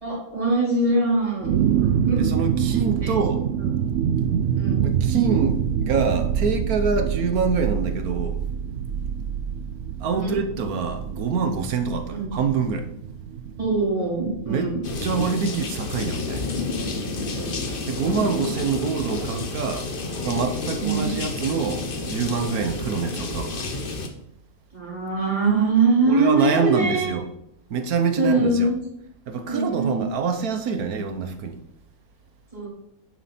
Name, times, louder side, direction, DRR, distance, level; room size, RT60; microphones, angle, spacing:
voice 1, 0.0-1.5 2.0-2.3 3.0-3.1 3.6-3.7 4.5-4.9 10.1-10.4 12.1-12.3 13.6-14.8 17.3-17.6 18.1-18.4 20.8-21.1 24.7-27.1 28.2-28.8 29.5-30.1 32.5-32.7, right 3 dB, 20° right, 4.2 m, -23 dB
sound 1, 1.4-15.1, right 8 dB, 70° right, 0.9 m, -26 dB
voice 2, 2.2-3.4 4.8-8.4 10.0-12.9 14.5-14.7 15.0-16.5 17.9-19.9 20.2-23.6 26.1-27.3 27.7-28.7 29.3-31.6, right 5 dB, 90° right, 1.5 m, -25 dB
sound 2, 14.8-24.1, left 3 dB, 40° left, 1.2 m, -30 dB
10.0 x 7.5 x 4.3 m
omnidirectional pair, 1.5 m